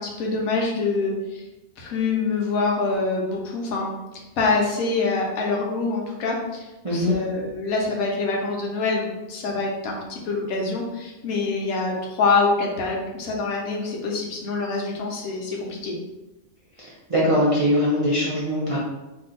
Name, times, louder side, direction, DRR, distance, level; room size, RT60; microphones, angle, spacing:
voice 1, 0.0-1.4 1.8-3.9 4.4-15.9, left 3 dB, 80° left, -1 dB, 1.2 m, -25 dB
voice 2, 6.8-7.2 16.8-18.8, equal, 45° right, -7 dB, 0.4 m, -22 dB
2.9 x 2.6 x 3.7 m, 1.0 s
omnidirectional pair, 1.5 m